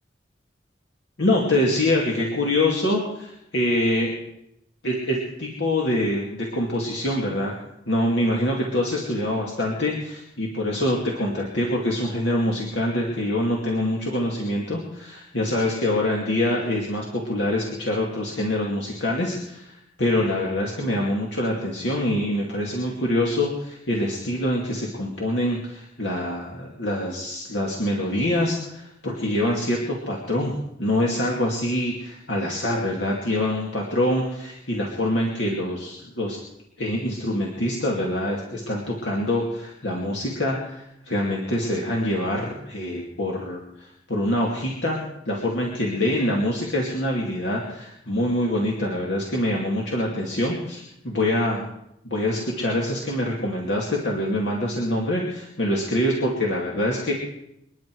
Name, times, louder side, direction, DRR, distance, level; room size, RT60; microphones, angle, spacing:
voice 1, 1.2-4.2 4.8-7.5 7.9-19.7 20.0-36.4 36.8-45.0 45.3-51.7 52.0-57.1, left 1 dB, 75° left, -2 dB, 2.4 m, -25 dB
27.5 x 10.5 x 4.7 m, 0.80 s
head